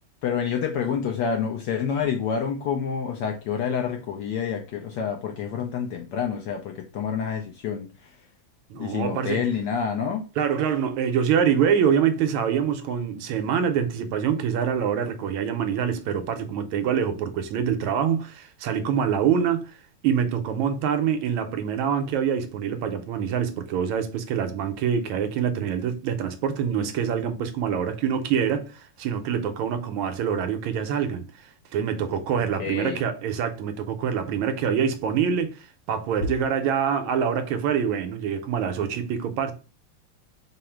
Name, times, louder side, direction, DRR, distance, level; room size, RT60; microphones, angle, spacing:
voice 1, 0.2-8.2 8.7-10.2 32.4-33.0, left 7 dB, 75° left, 1.0 m, -28 dB
voice 2, 8.7-9.4 10.4-19.8 20.0-31.2 31.7-39.5, right 7 dB, 80° right, 1.4 m, -25 dB
3.7 x 2.0 x 4.3 m
omnidirectional pair, 2.3 m